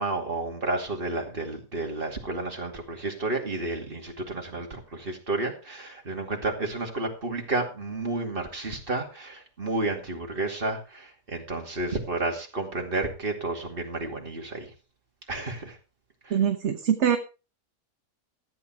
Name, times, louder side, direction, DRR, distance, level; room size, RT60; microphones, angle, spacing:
voice 1, 0.0-14.7 15.3-15.8 16.2-16.4, right 2 dB, 40° right, 2 dB, 2.6 m, -31 dB
voice 2, 16.3-17.2, right 8 dB, 55° right, 7 dB, 1.1 m, -23 dB
14.0 x 8.6 x 4.4 m, 0.33 s
omnidirectional pair, 1.5 m